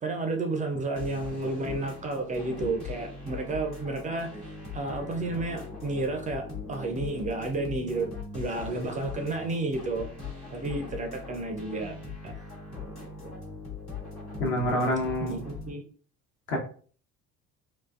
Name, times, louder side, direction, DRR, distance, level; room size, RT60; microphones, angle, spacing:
voice 1, 0.0-4.3 4.7-8.1 8.3-10.1 10.5-12.0 12.2-12.3 15.2-15.8, right 2 dB, 20° right, 4 dB, 0.4 m, -31 dB
sound 1, 1.0-15.7, left 4 dB, 85° left, 1.2 m, -40 dB
voice 2, 14.4-15.3 16.5-16.6, left 1 dB, 65° left, 0 dB, 1.0 m, -26 dB
3.7 x 2.4 x 2.3 m, 0.43 s
figure-of-eight pair, 55°, 43 cm